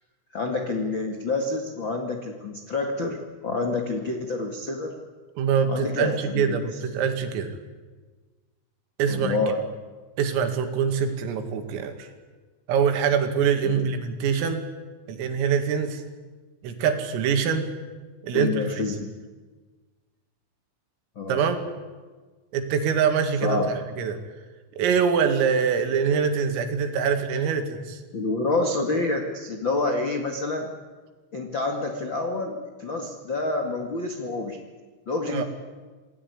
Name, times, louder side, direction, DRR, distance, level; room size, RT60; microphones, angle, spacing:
voice 1, 0.3-3.2 3.4-4.9 5.7-6.6 9.1-9.6 13.6-13.9 18.3-19.1 21.1-21.4 23.4-23.7 28.1-30.7 31.3-34.6 35.1-35.4, left 3 dB, 65° left, 3 dB, 1.1 m, -28 dB
voice 2, 5.4-7.6 9.0-9.4 10.2-12.1 12.7-14.6 15.1-16.0 16.6-17.7 18.2-18.6 21.3-21.6 22.5-23.6 24.0-24.2 24.8-28.0 35.3-35.4, right 6 dB, 80° right, 6 dB, 4.8 m, -24 dB
27.5 x 19.0 x 9.7 m, 1.4 s
omnidirectional pair, 5.9 m